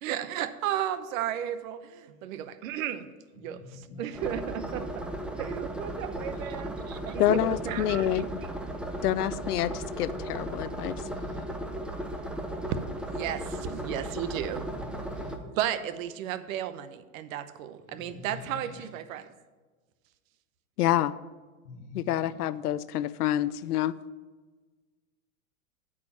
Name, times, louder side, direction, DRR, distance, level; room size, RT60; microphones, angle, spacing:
voice 1, 0.0-3.1 3.3-5.1 5.4-8.3 13.1-14.7 15.6-19.3, right 11 dB, 65° right, 13 dB, 0.8 m, -34 dB
voice 2, 3.4-4.0 6.9-7.0 11.0-11.5 14.7-15.3 17.9-18.9 21.6-22.3, left 4 dB, 65° left, 3 dB, 1.5 m, -46 dB
sound 1, 4.1-15.4, right 1 dB, ahead, 0.5 m, -36 dB
voice 3, 7.2-8.4 9.0-11.0 20.8-21.1 21.9-24.0, left 12 dB, 90° left, 16 dB, 0.5 m, -27 dB
8.3 x 5.0 x 7.3 m, 1.3 s
hypercardioid pair, 120°, 44 cm